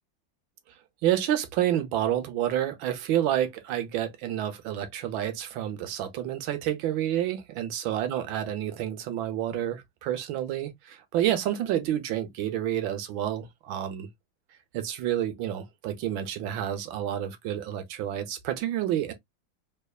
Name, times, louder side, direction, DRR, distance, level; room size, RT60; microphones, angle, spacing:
voice 1, 1.0-14.1 14.7-19.1, right 11 dB, 80° right, 1.5 m, -29 dB
3.5 x 3.3 x 2.3 m
omnidirectional pair, 2.1 m